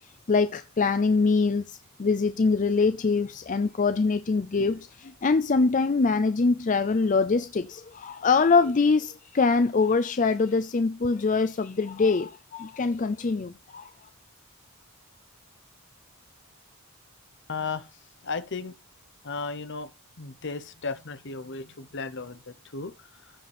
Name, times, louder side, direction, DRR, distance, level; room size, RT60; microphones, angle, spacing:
voice 1, 0.3-13.9, left 4 dB, 35° left, 0.4 m, -24 dB
voice 2, 17.5-18.7 19.2-19.9 20.2-23.3, left 4 dB, 55° left, 0.9 m, -35 dB
15.0 x 5.1 x 3.4 m
head